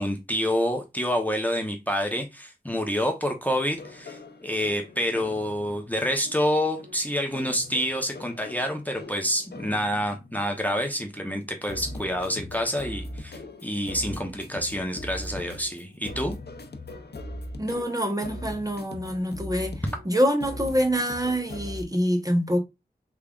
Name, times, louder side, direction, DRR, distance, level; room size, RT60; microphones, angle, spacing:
voice 1, 0.0-16.3, equal, 10° left, 0.8 m, -28 dB
sound 1, 3.5-21.8, left 1 dB, 80° left, 0.6 m, -41 dB
voice 2, 17.6-22.6, equal, 20° right, 1.0 m, -25 dB
3.6 x 3.3 x 2.4 m
wide cardioid pair, 40°, 17 cm